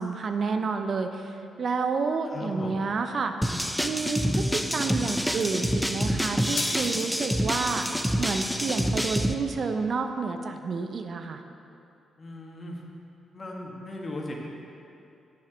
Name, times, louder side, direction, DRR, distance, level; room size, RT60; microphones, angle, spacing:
voice 1, 0.0-3.4 3.8-7.9 8.2-11.4, right 4 dB, 55° right, 7 dB, 0.6 m, -29 dB
voice 2, 2.3-2.8 12.2-12.8 13.3-14.3, left 1 dB, 45° left, -1 dB, 1.8 m, -37 dB
sound 1, 3.4-9.3, equal, ahead, 0.6 m, -27 dB
sound 2, 5.3-5.8 6.6-7.1 7.4-8.1 9.1-9.2, left 4 dB, 75° left, 1.0 m, -37 dB
8.7 x 7.3 x 5.1 m, 2.7 s
supercardioid pair, 50°, 0 cm